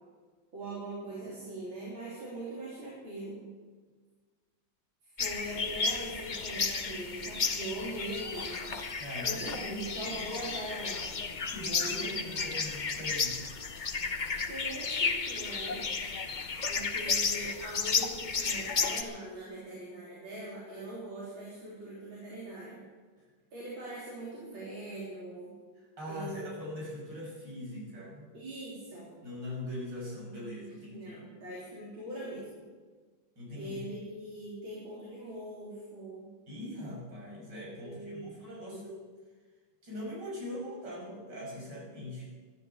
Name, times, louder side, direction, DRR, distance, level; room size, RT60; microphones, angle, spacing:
voice 1, 0.5-3.4 5.2-8.7 9.2-11.0 14.5-15.9 16.7-22.8 23.5-25.5 26.1-26.5 28.3-29.1 30.9-32.6 33.5-36.3 37.6-38.4, right 1 dB, 75° right, -7 dB, 4.6 m, -41 dB
sound 1, 5.2-19.0, left 5 dB, 45° left, 0.6 m, -33 dB
voice 2, 9.0-9.8 11.5-13.4 26.0-28.3 29.2-31.2 33.4-33.7 36.5-39.0 39.8-42.3, left 1 dB, 60° right, -4 dB, 6.7 m, -41 dB
12.5 x 12.5 x 8.2 m, 1.5 s
omnidirectional pair, 2.2 m